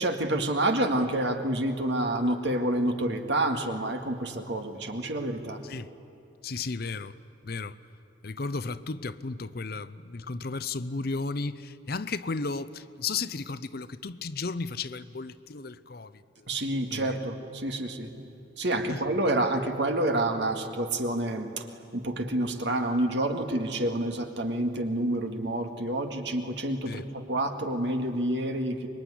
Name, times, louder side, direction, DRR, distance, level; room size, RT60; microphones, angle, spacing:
voice 1, 0.0-5.6 16.5-18.1 18.6-21.7 21.9-28.9, right 1 dB, 60° right, 2.0 m, -28 dB
voice 2, 6.4-7.1 7.4-7.8 8.2-16.1 16.4-16.5 16.9-17.2 18.9-19.0 26.9-27.0, left 4 dB, 50° left, 0.7 m, -34 dB
25.5 x 22.0 x 10.0 m
head